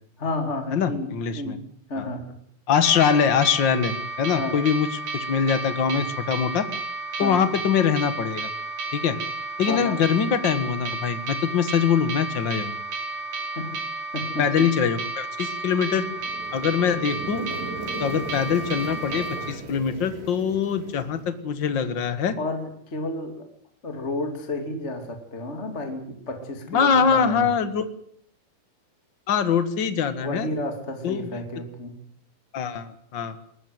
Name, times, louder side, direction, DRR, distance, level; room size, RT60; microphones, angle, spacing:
voice 1, 0.2-1.6 1.9-2.3 4.4-4.6 7.2-7.4 9.7-10.0 13.6-13.7 14.1-14.7 22.4-23.5 23.8-27.5 30.2-32.0, left 2 dB, 20° left, 5 dB, 2.4 m, -31 dB
voice 2, 0.7-1.6 2.0-2.1 2.7-6.7 7.2-8.5 8.9-9.2 9.6-12.8 14.4-16.1 16.5-17.5 18.0-22.3 26.7-27.9 29.3-30.5 31.0-31.3 32.5-33.3, left 7 dB, 60° left, 11 dB, 1.2 m, -23 dB
sound 1, 2.8-19.5, right 3 dB, 55° right, 4.0 m, -32 dB
sound 2, 15.9-21.8, right 2 dB, 75° right, 8.3 m, -38 dB
21.5 x 20.0 x 7.9 m, 0.63 s
omnidirectional pair, 4.5 m